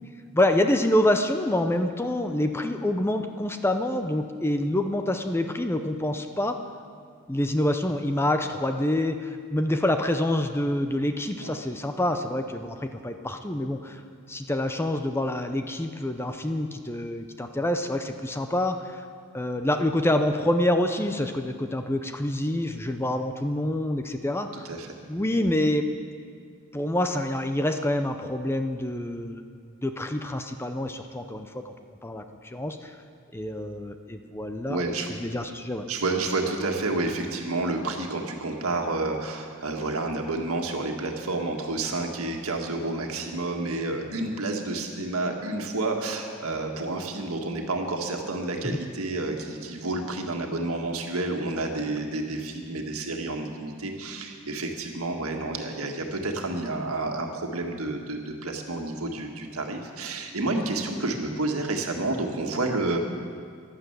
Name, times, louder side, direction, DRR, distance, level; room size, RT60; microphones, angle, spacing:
voice 1, 0.3-6.6 7.3-14.0 14.3-19.0 19.3-24.6 25.1-25.8 26.7-29.4 29.8-31.7 32.0-32.9 33.3-34.9 35.2-35.9 48.6-48.9, left 1 dB, 10° left, 7 dB, 0.6 m, -27 dB
voice 2, 34.6-35.1 35.9-63.0, right 2 dB, 80° right, 2 dB, 1.8 m, -30 dB
12.5 x 11.5 x 8.1 m, 2.1 s
head